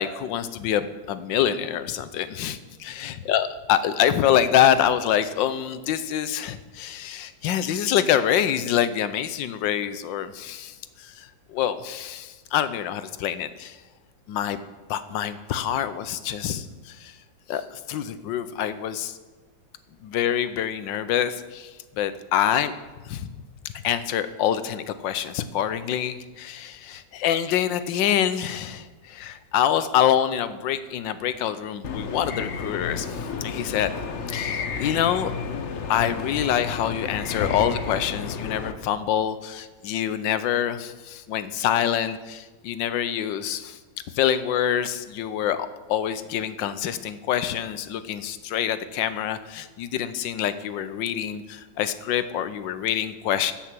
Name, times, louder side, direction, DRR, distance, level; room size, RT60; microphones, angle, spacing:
voice 1, 0.0-2.6 3.0-13.8 14.3-14.6 14.9-17.2 17.5-19.2 20.0-22.7 23.0-23.3 23.8-33.9 34.3-43.8 44.1-53.5, left 10 dB, 75° left, 13 dB, 1.4 m, -26 dB
sound 1, 31.8-38.7, left 5 dB, 50° left, 0.9 m, -31 dB
13.5 x 6.5 x 7.5 m, 1.3 s
omnidirectional pair, 2.0 m